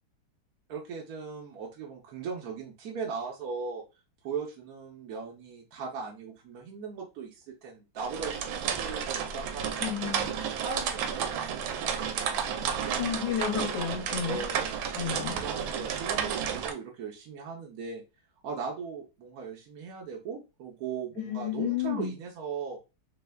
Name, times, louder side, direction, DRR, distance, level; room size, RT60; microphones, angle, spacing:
voice 1, 0.7-3.8 4.2-9.9 10.6-13.2 14.2-18.0 18.4-22.8, right 5 dB, 65° right, -1 dB, 0.9 m, -39 dB
sound 1, 8.0-16.7, right 7 dB, 80° right, 1.3 m, -32 dB
voice 2, 9.8-10.3 13.0-14.4 15.0-15.4 21.2-22.1, left 9 dB, 70° left, 1 dB, 1.4 m, -31 dB
3.3 x 3.2 x 2.2 m, 0.27 s
omnidirectional pair, 2.2 m